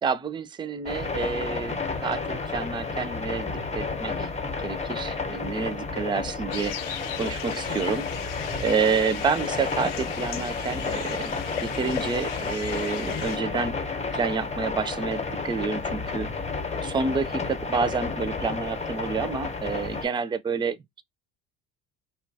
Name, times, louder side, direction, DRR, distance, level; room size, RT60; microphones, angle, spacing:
voice 1, 0.0-4.3 4.6-8.1 8.6-13.8 14.1-16.3 16.8-20.8, right 5 dB, 15° right, 0.4 m, -29 dB
sound 1, 0.9-20.1, left 4 dB, 20° left, 0.8 m, -31 dB
sound 2, 6.5-13.4, left 10 dB, 70° left, 0.6 m, -38 dB
2.7 x 2.2 x 2.6 m
hypercardioid pair, 70°, 34 cm